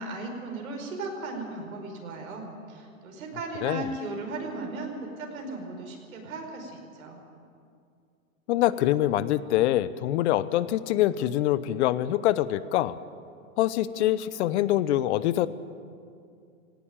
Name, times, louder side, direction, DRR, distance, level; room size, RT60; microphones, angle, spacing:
voice 1, 0.0-7.2, right 3 dB, 85° right, 2 dB, 5.0 m, -36 dB
voice 2, 8.5-13.0 13.6-15.5, left 13 dB, 55° left, 16 dB, 0.8 m, -24 dB
18.0 x 16.5 x 9.0 m, 2.3 s
hypercardioid pair, 125°, 41 cm